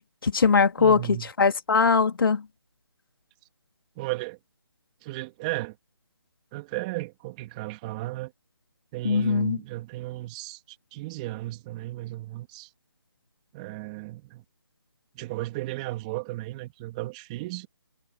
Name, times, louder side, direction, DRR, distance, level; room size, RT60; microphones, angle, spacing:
voice 1, 0.0-2.4 9.0-9.6, left 5 dB, 55° left, 2.6 m, -21 dB
voice 2, 0.8-1.3 4.0-4.4 5.0-5.8 6.5-8.3 8.9-12.7 13.5-14.4 15.1-17.7, right 19 dB, 15° right, 2.6 m, -35 dB
figure-of-eight pair, 165°, 14 cm